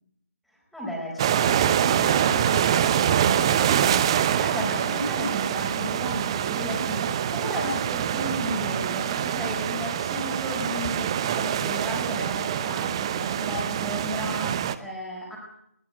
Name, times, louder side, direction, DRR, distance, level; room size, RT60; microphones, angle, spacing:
voice 1, 0.5-15.4, equal, ahead, -5 dB, 4.6 m, -34 dB
sound 1, 1.2-14.7, right 9 dB, 20° right, 0.8 m, -25 dB
20.5 x 17.0 x 7.8 m, 0.78 s
figure-of-eight pair, 155°, 8 cm